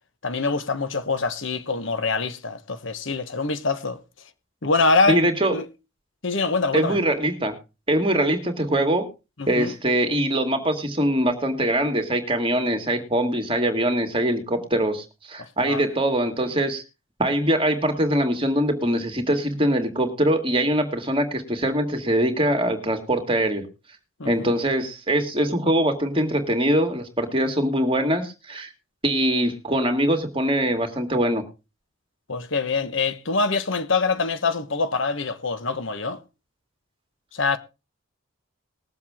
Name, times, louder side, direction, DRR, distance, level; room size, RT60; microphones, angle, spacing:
voice 1, 0.2-4.0 4.6-5.2 5.5-5.6 6.2-7.0 9.4-9.7 15.4-15.8 24.2-24.5 32.3-36.2 37.3-37.6, left 3 dB, 65° left, 1.2 m, -24 dB
voice 2, 5.1-5.6 6.7-7.5 7.9-9.1 9.5-16.8 17.2-23.7 24.2-28.7 29.0-31.4, right 1 dB, 25° right, 2.1 m, -23 dB
20.5 x 7.7 x 3.6 m
head